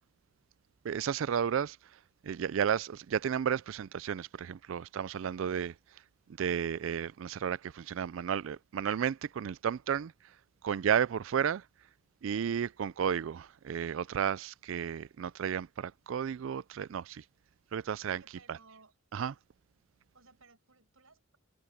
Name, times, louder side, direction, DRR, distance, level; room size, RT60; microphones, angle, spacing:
voice 1, 0.8-1.8 2.2-5.7 6.4-10.1 10.6-11.6 12.2-17.2 17.7-18.2 18.5-18.6 19.1-19.3, right 8 dB, 65° right, 0.4 m, -32 dB
voice 2, 18.0-18.9 20.1-21.4, right 4 dB, 90° right, 6.1 m, -60 dB
head